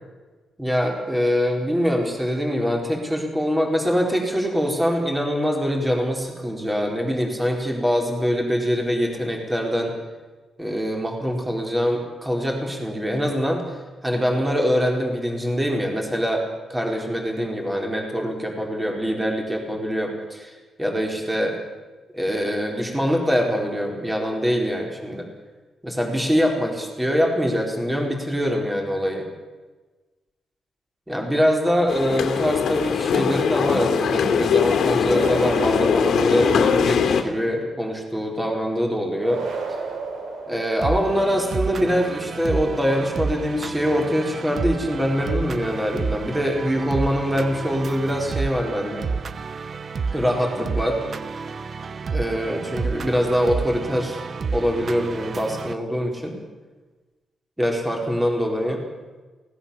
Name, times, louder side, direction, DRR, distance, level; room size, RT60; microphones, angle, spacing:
voice 1, 0.6-9.9 10.6-13.6 14.0-16.4 16.7-20.5 20.8-21.5 22.1-25.3 25.8-29.2 31.1-39.4 40.5-49.1 50.1-51.0 52.1-54.2 54.5-56.4 57.6-58.8, equal, 10° right, 1 dB, 4.4 m, -23 dB
sound 1, 31.9-37.2, left 7 dB, 75° left, 2.7 m, -21 dB
sound 2, 35.0-37.1 39.2-41.3, right 4 dB, 75° right, 3.6 m, -33 dB
sound 3, 40.8-55.7, right 5 dB, 45° right, 0.8 m, -30 dB
23.5 x 18.0 x 7.2 m, 1.3 s
cardioid pair, 130°, 0 cm